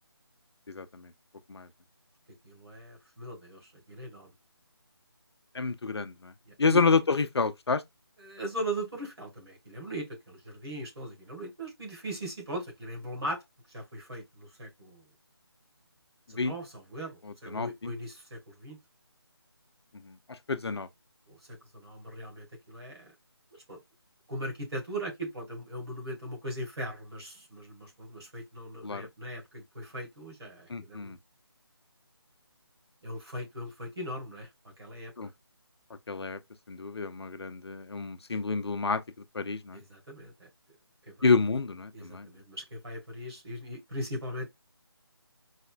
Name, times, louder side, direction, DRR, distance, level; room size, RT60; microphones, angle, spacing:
voice 1, 0.7-1.1 1.5-1.7 5.5-6.3 6.6-7.8 16.4-16.5 17.5-17.9 20.1-20.9 28.8-29.1 30.7-31.2 35.2-35.3 36.1-36.4 36.7-39.0 39.3-39.8 41.2-42.3, left 4 dB, 75° left, 0.5 m, -29 dB
voice 2, 2.4-4.3 6.5-6.8 8.2-13.4 13.7-15.1 16.3-18.8 21.3-23.1 23.5-23.8 24.3-31.2 33.0-34.5 34.8-35.1 39.7-40.5 41.1-41.3 41.9-44.5, right 1 dB, 70° right, 2.1 m, -39 dB
4.1 x 2.1 x 2.3 m
figure-of-eight pair, 160°, 14 cm